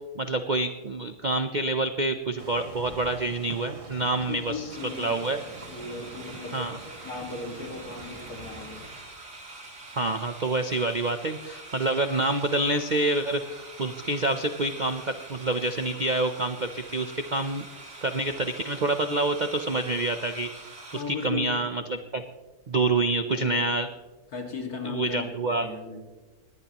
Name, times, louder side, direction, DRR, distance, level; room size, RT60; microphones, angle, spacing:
voice 1, 0.1-4.7 5.0-5.4 6.5-6.8 10.0-17.6 18.0-20.5 20.9-22.2 22.7-23.9 24.8-25.7, right 2 dB, 50° right, 8 dB, 0.5 m, -27 dB
sound 1, 2.4-9.0, right 2 dB, 25° right, 1.3 m, -45 dB
voice 2, 4.3-5.4 5.7-9.0 20.9-21.6 23.3-23.7 24.3-26.0, left 4 dB, 70° left, 2 dB, 2.6 m, -37 dB
sound 2, 4.7-21.0, right 2 dB, 85° right, 3.7 m, -45 dB
20.5 x 17.5 x 3.0 m, 1.2 s
omnidirectional pair, 1.7 m